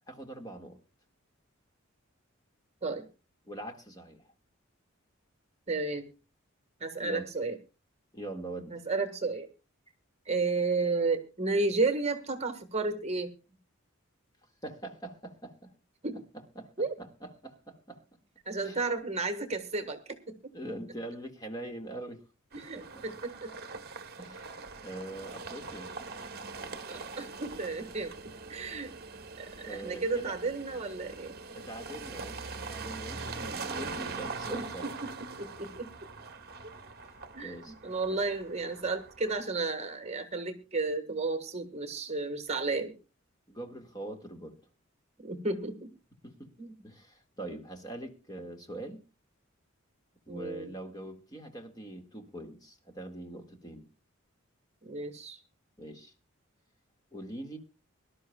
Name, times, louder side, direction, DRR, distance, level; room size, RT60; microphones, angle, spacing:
voice 1, 0.1-0.8 3.5-4.3 7.0-7.3 8.1-8.8 14.6-15.7 16.3-16.7 17.0-18.1 18.6-18.8 20.5-22.2 22.6-23.0 24.2-25.9 29.7-30.3 31.1-31.2 31.5-34.9 37.0-37.7 38.1-38.2 43.5-44.6 46.2-46.5 46.8-49.0 50.3-53.9 55.8-56.1 57.1-57.6, right 1 dB, 20° left, 4 dB, 1.9 m, -43 dB
voice 2, 5.7-6.1 6.8-7.6 8.7-9.5 10.2-13.3 16.0-16.2 16.8-16.9 18.4-20.5 22.5-23.5 26.9-28.1 28.5-28.9 29.4-31.3 34.5-35.9 37.3-42.9 45.2-45.9 46.6-46.7 47.5-47.6 50.3-50.7 54.8-55.4, right 3 dB, 30° right, 7 dB, 1.5 m, -33 dB
sound 1, 22.5-39.5, right 4 dB, 45° right, 1.1 m, -42 dB
23.5 x 12.5 x 2.3 m, 0.31 s
head